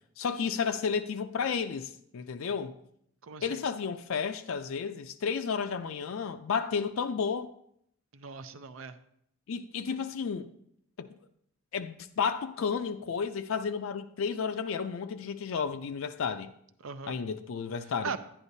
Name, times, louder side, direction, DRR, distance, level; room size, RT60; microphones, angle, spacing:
voice 1, 0.2-2.7 3.4-7.5 9.5-10.5 11.0-11.1 11.7-16.5 17.1-18.1, left 6 dB, 75° left, 0.4 m, -32 dB
voice 2, 3.2-3.6 8.1-9.0 16.8-17.2 18.0-18.2, right 5 dB, 70° right, 0.5 m, -39 dB
10.5 x 9.8 x 2.7 m
head